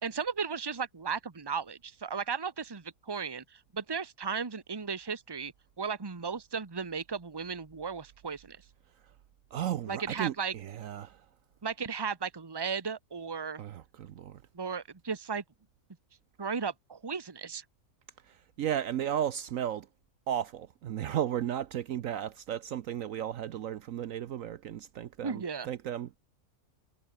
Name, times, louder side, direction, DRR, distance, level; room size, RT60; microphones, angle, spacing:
voice 1, 0.0-5.5 5.8-8.6 9.9-10.5 11.6-13.6 14.5-15.4 16.4-17.6 25.2-25.7, right 5 dB, 20° right, 1.0 m, -35 dB
voice 2, 9.5-11.2 13.6-14.4 18.3-19.9 20.3-26.2, right 10 dB, 65° right, 1.0 m, -34 dB
omnidirectional pair, 1.6 m